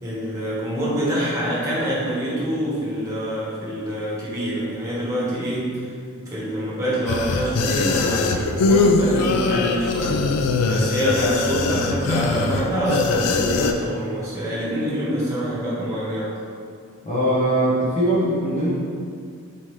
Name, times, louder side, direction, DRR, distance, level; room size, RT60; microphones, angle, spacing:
voice 1, 0.0-5.9 6.2-10.2 10.7-16.4, equal, 15° right, -8 dB, 1.2 m, -25 dB
sound 1, 7.1-13.7, left 3 dB, 90° left, 0.4 m, -21 dB
voice 2, 17.0-18.7, right 1 dB, 30° left, -9 dB, 0.9 m, -21 dB
4.1 x 3.6 x 3.1 m, 2.2 s
head